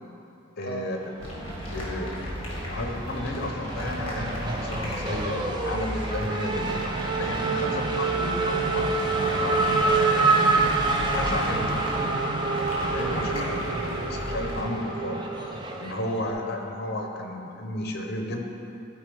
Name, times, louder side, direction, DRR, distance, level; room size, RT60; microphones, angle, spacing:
voice 1, 0.6-1.0 1.3-6.7 7.2-8.1 8.5-9.0 9.4-10.5 11.1-11.9 12.9-13.3 14.1-15.2 15.8-18.4, left 1 dB, 50° left, 2 dB, 0.8 m, -33 dB
sound 1, 1.2-14.6, equal, 25° left, 1.8 m, -35 dB
Race car auto racing / Accelerating revving vroom, 1.3-2.3 2.6-16.3, right 3 dB, 20° right, 0.5 m, -27 dB
voice 2, 7.6-8.4 13.0-14.0, right 1 dB, 90° right, 3 dB, 0.8 m, -38 dB
12.5 x 4.5 x 3.5 m, 2.8 s
head